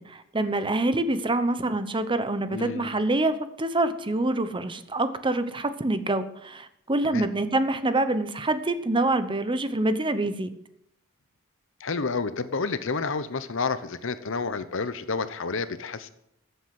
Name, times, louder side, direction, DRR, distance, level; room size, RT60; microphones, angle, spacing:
voice 1, 0.0-10.5, right 2 dB, 25° right, 11 dB, 0.9 m, -26 dB
voice 2, 2.5-2.9 7.0-7.3 11.8-16.1, left 4 dB, 65° left, 13 dB, 0.9 m, -30 dB
14.5 x 8.0 x 7.7 m, 0.76 s
head